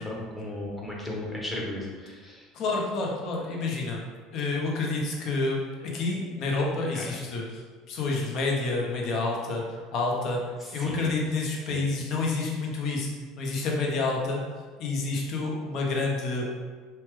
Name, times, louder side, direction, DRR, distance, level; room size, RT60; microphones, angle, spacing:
voice 1, 0.0-2.4 6.9-7.1 10.6-11.0 11.7-11.8, left 1 dB, 10° left, -3 dB, 0.9 m, -35 dB
voice 2, 2.5-4.0 4.3-10.4 10.7-13.1 13.4-14.4 14.8-16.4, left 3 dB, 55° left, -1 dB, 0.7 m, -29 dB
2.8 x 2.1 x 3.3 m, 1.5 s
hypercardioid pair, 80°, 0 cm